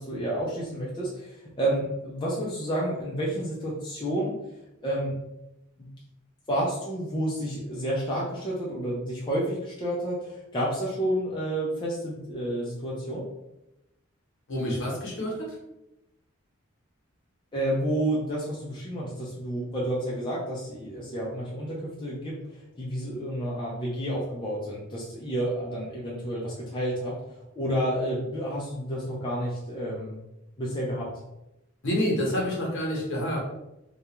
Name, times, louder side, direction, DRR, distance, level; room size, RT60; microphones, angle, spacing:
voice 1, 0.0-4.4 4.8-5.2 5.8-5.9 6.5-13.2 17.5-22.3 22.8-27.2 27.6-30.2 30.6-31.1, right 1 dB, 20° left, -6 dB, 0.4 m, -30 dB
voice 2, 14.5-15.6 31.8-33.4, equal, 60° left, -2 dB, 0.9 m, -28 dB
2.4 x 2.1 x 2.9 m, 0.91 s
head